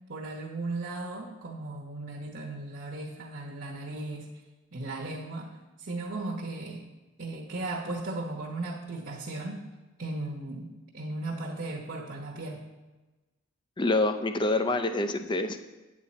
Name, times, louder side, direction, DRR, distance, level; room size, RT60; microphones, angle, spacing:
voice 1, 0.1-4.3 4.7-5.5 5.8-6.9 7.2-9.6 10.0-10.7 10.9-12.6, right 2 dB, 50° right, -2 dB, 0.9 m, -36 dB
voice 2, 13.8-15.6, left 2 dB, 20° left, 9 dB, 0.4 m, -26 dB
8.7 x 7.5 x 4.2 m, 1.2 s
head